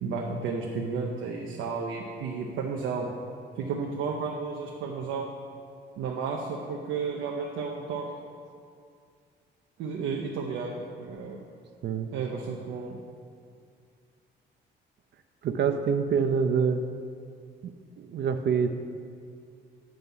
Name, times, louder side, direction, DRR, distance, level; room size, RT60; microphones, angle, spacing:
voice 1, 0.0-3.1 3.6-5.3 6.0-8.1 9.8-11.4 12.1-13.0, right 5 dB, 90° right, 0 dB, 0.7 m, -32 dB
voice 2, 15.4-16.8 17.6-17.7 18.0-18.8, right 6 dB, 60° right, 7 dB, 0.5 m, -26 dB
7.8 x 5.6 x 5.4 m, 2.3 s
cardioid pair, 90°, 20 cm